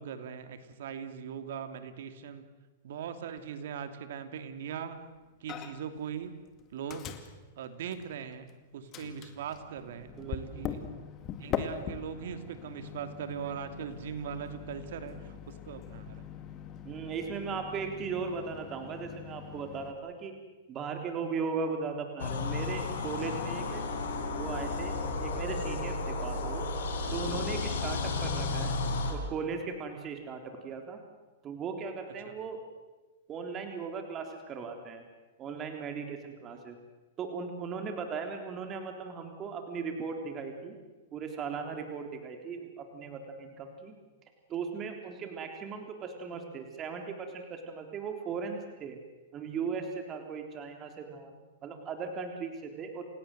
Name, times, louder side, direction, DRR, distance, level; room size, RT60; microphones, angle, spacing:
voice 1, 0.0-2.5 2.8-5.0 5.4-6.4 6.7-7.1 7.6-10.8 11.4-16.2 32.2-32.4 36.6-36.8, right 8 dB, 70° right, 9 dB, 2.8 m, -40 dB
Microwave oven, 5.5-6.0 6.2-8.5 8.9-19.9, left 8 dB, 30° left, 2.4 m, -42 dB
voice 2, 10.2-10.6 16.8-20.4 20.7-23.8 24.3-26.6 27.1-28.8 29.1-31.0 31.4-32.6 33.3-35.0 35.4-36.8 37.2-40.8 41.1-44.0 44.5-49.0 49.3-51.4 51.6-53.1, right 5 dB, 30° right, 5 dB, 3.7 m, -37 dB
sound 1, 22.2-29.1, left 3 dB, 80° left, 5.5 m, -33 dB
29.0 x 17.0 x 7.9 m, 1.2 s
hypercardioid pair, 130°, 0 cm